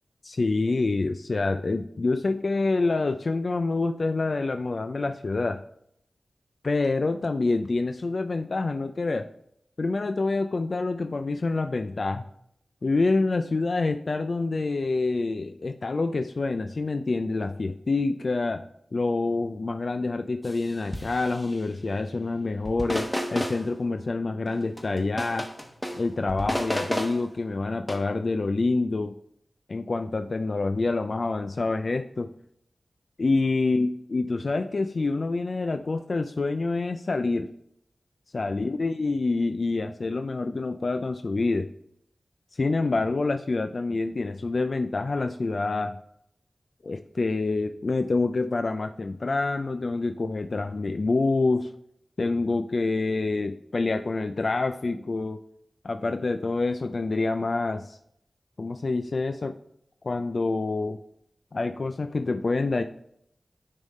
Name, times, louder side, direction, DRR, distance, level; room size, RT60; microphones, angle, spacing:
voice 1, 0.2-5.6 6.6-9.3 9.8-12.3 12.8-18.6 18.9-25.5 25.9-29.1 29.7-32.3 33.2-37.5 38.3-41.7 42.5-46.0 46.8-51.7 52.2-55.4 55.8-58.0 58.6-59.5 60.0-61.0 61.5-62.8, left 3 dB, 55° left, 7 dB, 0.3 m, -27 dB
sound 1, 20.4-20.6 20.9-21.6 22.6-23.6 24.5-26.0 26.3-27.2 27.9-28.0, equal, 5° left, 1.0 m, -32 dB
9.9 x 3.6 x 4.2 m, 0.72 s
wide cardioid pair, 95°, 0 cm